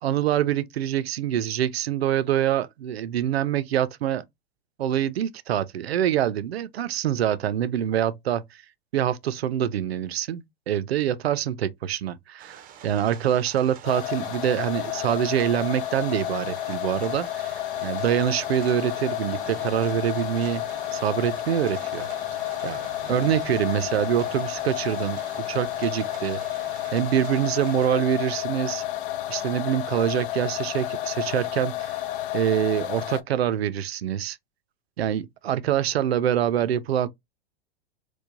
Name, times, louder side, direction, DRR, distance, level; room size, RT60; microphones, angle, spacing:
voice 1, 0.0-4.2 4.8-8.6 8.9-20.7 20.9-22.1 22.6-22.8 23.1-25.2 25.5-26.4 26.9-28.8 29.3-32.0 32.3-34.4 35.0-37.1, right 10 dB, 85° right, 0.5 m, -25 dB
sound 1, 12.4-27.9, right 8 dB, 30° right, 0.6 m, -45 dB
sound 2, 13.8-33.2, left 13 dB, 60° left, 0.6 m, -31 dB
4.5 x 2.2 x 2.5 m
hypercardioid pair, 110°, 30 cm